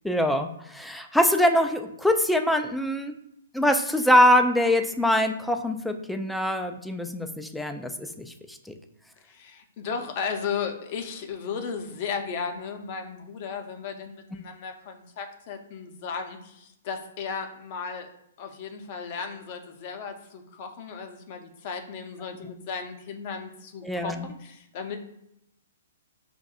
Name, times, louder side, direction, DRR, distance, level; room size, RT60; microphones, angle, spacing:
voice 1, 0.0-3.2 3.5-7.9 8.2-8.6 23.8-24.3, left 1 dB, 5° left, 6 dB, 0.3 m, -23 dB
voice 2, 9.2-18.1 18.4-25.0, left 6 dB, 45° left, 5 dB, 0.6 m, -35 dB
5.2 x 2.6 x 2.4 m, 0.78 s
hypercardioid pair, 125°, 0 cm